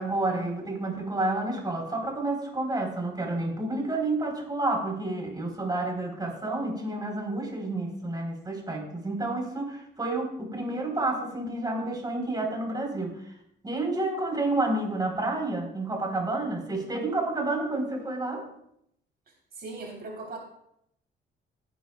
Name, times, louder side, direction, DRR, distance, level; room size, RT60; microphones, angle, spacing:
voice 1, 0.0-13.3 13.6-18.4, right 2 dB, 20° right, 1 dB, 3.6 m, -30 dB
voice 2, 19.5-20.4, right 3 dB, 50° right, 0 dB, 3.3 m, -38 dB
16.0 x 9.3 x 2.2 m, 0.75 s
cardioid pair, 90°, 20 cm